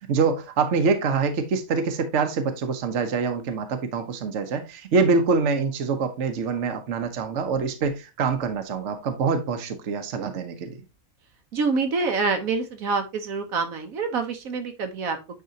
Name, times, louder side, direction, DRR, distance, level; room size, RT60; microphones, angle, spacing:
voice 1, 0.1-10.8, right 4 dB, 60° right, 1.2 m, -25 dB
voice 2, 11.5-15.2, right 4 dB, 75° right, 1.3 m, -26 dB
9.4 x 4.2 x 2.7 m
omnidirectional pair, 1.5 m